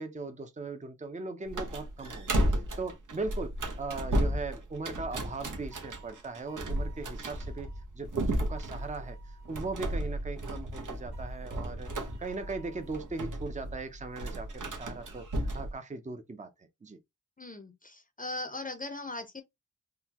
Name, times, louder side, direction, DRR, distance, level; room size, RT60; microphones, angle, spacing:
voice 1, 0.0-3.5 3.8-7.7 7.9-11.9 12.2-16.5 16.8-17.0, right 3 dB, 25° right, 0.5 m, -39 dB
sound 1, 1.5-15.7, right 1 dB, 85° right, 0.8 m, -34 dB
sound 2, 5.7-7.8 8.5-9.8 11.1-13.3, right 7 dB, 60° right, 1.2 m, -59 dB
voice 2, 17.4-19.4, left 2 dB, 25° left, 0.6 m, -39 dB
3.7 x 2.2 x 2.8 m
wide cardioid pair, 70°, 31 cm